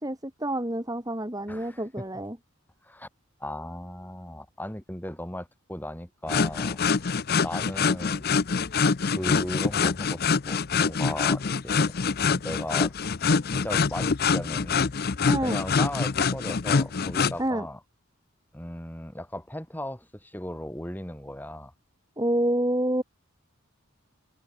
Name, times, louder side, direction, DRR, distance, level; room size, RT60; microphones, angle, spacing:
voice 1, 0.0-2.4 15.3-15.6 17.4-17.7 22.2-23.0, right 1 dB, 15° right, 3.0 m, -28 dB
voice 2, 1.5-2.1 2.8-3.1 3.4-7.1 7.4-8.3 9.0-12.0 12.3-12.9 13.5-14.9 15.4-17.8 18.5-21.7, left 1 dB, 10° left, 6.7 m, -37 dB
sound 1, 6.3-17.4, left 5 dB, 45° left, 0.6 m, -25 dB
open air
head